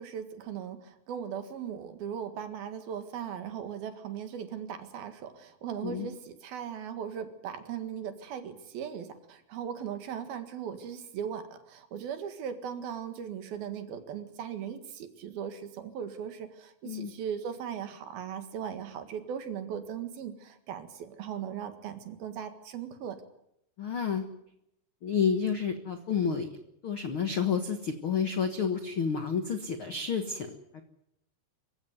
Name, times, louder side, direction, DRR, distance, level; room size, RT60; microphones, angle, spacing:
voice 1, 0.0-23.2, right 8 dB, 65° right, 8 dB, 3.4 m, -38 dB
voice 2, 23.8-24.2 25.0-26.5 26.8-30.8, left 6 dB, 85° left, 7 dB, 1.1 m, -30 dB
25.5 x 16.0 x 9.5 m, 0.80 s
omnidirectional pair, 4.9 m